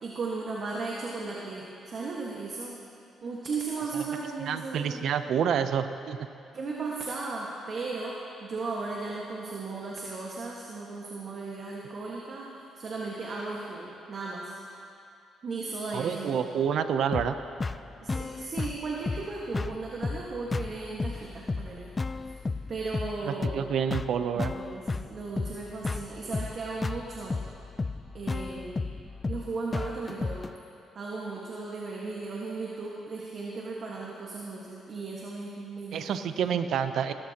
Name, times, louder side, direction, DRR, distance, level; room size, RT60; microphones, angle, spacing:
voice 1, 0.0-2.8 3.2-5.0 6.5-12.5 12.7-14.5 15.4-16.5 18.0-21.9 22.2-22.3 22.7-23.6 24.3-27.4 28.1-28.9 29.3-30.4 30.9-36.6, right 3 dB, 50° right, -3 dB, 1.6 m, -36 dB
voice 2, 4.4-6.2 15.9-17.4 23.2-24.5 35.9-37.1, right 8 dB, 70° right, 10 dB, 0.6 m, -28 dB
sound 1, 17.1-30.5, left 3 dB, 25° left, 0.3 m, -34 dB
19.0 x 14.0 x 2.9 m, 2.6 s
cardioid pair, 90°, 0 cm